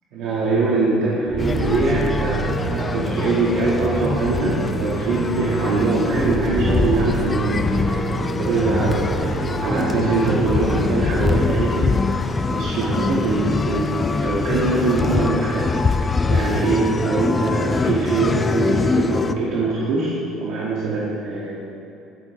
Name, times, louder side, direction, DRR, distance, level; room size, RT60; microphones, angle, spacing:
voice 1, 0.1-8.1 8.4-21.7, right 3 dB, 70° right, -7 dB, 2.3 m, -23 dB
sound 1, 1.3-10.9, right 3 dB, 35° right, 1.0 m, -28 dB
sound 2, 1.4-19.3, left 4 dB, 20° left, 0.5 m, -24 dB
16.5 x 10.0 x 3.7 m, 2.7 s
cardioid pair, 140°, 0 cm